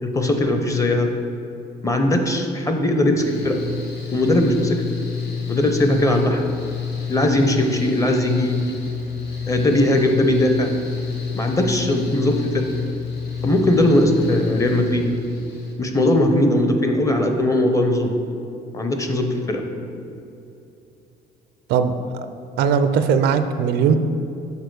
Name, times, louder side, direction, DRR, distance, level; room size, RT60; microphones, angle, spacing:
voice 1, 0.0-1.1 1.8-3.6 4.1-4.8 5.5-6.4 7.1-8.6 9.5-10.7 11.3-12.6 13.4-15.0 15.8-18.1 18.7-19.6, left 1 dB, 20° left, 4 dB, 0.7 m, -19 dB
Mechanical fan, 3.2-15.7, left 6 dB, 80° left, 1.2 m, -29 dB
voice 2, 22.6-24.0, right 6 dB, 80° right, 9 dB, 0.4 m, -18 dB
6.7 x 4.5 x 4.7 m, 2.7 s
cardioid pair, 110°, 17 cm